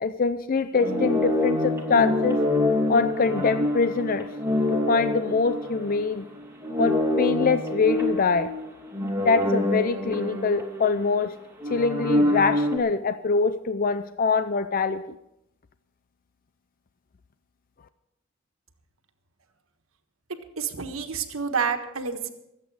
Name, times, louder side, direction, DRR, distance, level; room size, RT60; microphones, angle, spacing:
voice 1, 0.0-2.4 2.9-4.3 4.7-6.3 6.8-8.5 9.2-11.3 11.7-15.2, left 4 dB, 45° left, 11 dB, 0.5 m, -24 dB
sound 1, 0.7-6.2 6.6-11.2 11.6-12.8, left 1 dB, 15° right, 2.7 m, -26 dB
voice 2, 20.6-22.3, right 6 dB, 90° right, 6 dB, 1.5 m, -28 dB
23.5 x 8.3 x 4.9 m, 0.84 s
head